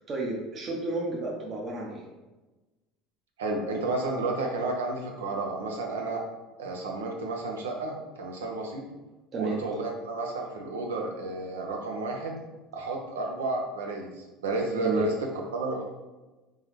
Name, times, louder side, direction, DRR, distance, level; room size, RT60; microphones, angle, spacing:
voice 1, 0.0-2.0 9.3-9.6 14.8-15.1, right 2 dB, 40° right, -2 dB, 0.9 m, -32 dB
voice 2, 3.4-6.2 6.6-8.8 9.3-12.4 12.7-15.1 15.5-15.8, right 2 dB, 85° right, 1 dB, 0.8 m, -31 dB
3.9 x 3.7 x 3.1 m, 1.1 s
hypercardioid pair, 80°, 0 cm